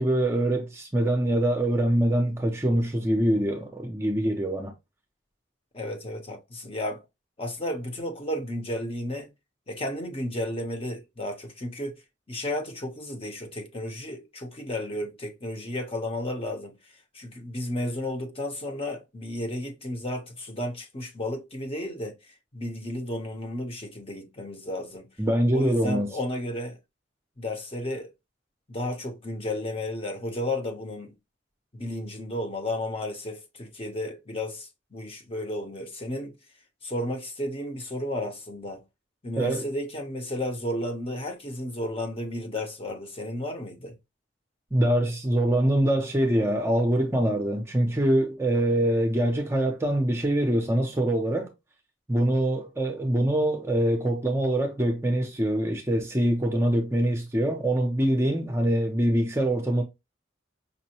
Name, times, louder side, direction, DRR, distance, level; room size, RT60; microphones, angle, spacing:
voice 1, 0.0-4.7 25.2-26.1 39.4-39.6 44.7-51.5 52.1-59.8, right 1 dB, 15° right, 0.6 m, -24 dB
voice 2, 5.7-7.0 7.4-9.3 9.7-12.0 12.3-16.8 17.1-22.2 22.5-25.1 25.5-26.8 27.4-28.1 28.7-31.1 31.7-36.4 36.8-38.8 39.2-44.0, left 1 dB, 30° left, 0.9 m, -33 dB
5.3 x 2.1 x 2.8 m
head